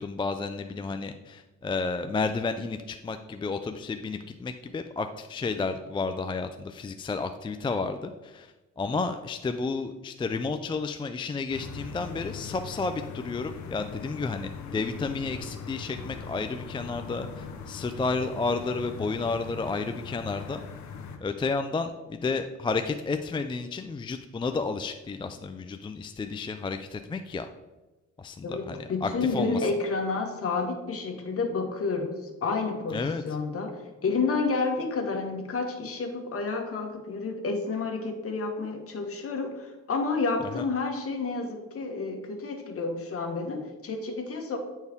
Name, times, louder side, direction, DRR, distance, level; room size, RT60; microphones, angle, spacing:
voice 1, 0.0-20.6 21.2-27.5 28.2-29.6 32.9-33.2 40.5-40.6, left 4 dB, 15° left, 7 dB, 0.4 m, -31 dB
sound 1, 11.5-21.2, left 5 dB, 70° left, 1.0 m, -40 dB
voice 2, 28.4-44.6, left 4 dB, 50° left, 3 dB, 1.5 m, -30 dB
9.3 x 4.5 x 3.5 m, 1.1 s
cardioid pair, 90°, 30 cm